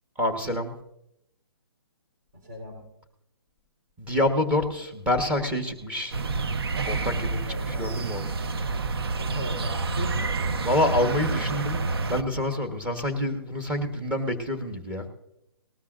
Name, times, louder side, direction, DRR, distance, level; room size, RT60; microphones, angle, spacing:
voice 1, 0.1-0.7 4.0-6.2 6.9-8.3 10.6-15.1, left 1 dB, 10° right, 4 dB, 1.3 m, -27 dB
voice 2, 2.3-2.8 7.5-8.0 9.2-10.3, equal, 45° right, 1 dB, 3.8 m, -36 dB
sound 1, 6.1-12.2, right 3 dB, 70° right, 0.9 m, -28 dB
19.5 x 13.0 x 2.6 m, 0.80 s
hypercardioid pair, 155°, 13 cm